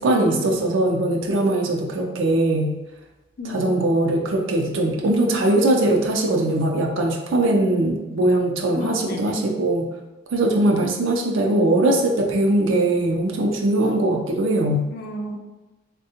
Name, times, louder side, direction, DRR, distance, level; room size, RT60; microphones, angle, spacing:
voice 1, 0.0-2.8 3.4-9.9 10.3-14.9, right 1 dB, 80° right, 1 dB, 0.5 m, -21 dB
voice 2, 3.4-3.8 8.8-9.4 14.9-15.4, left 1 dB, 50° left, 1 dB, 0.4 m, -32 dB
3.6 x 2.2 x 2.8 m, 1.1 s
head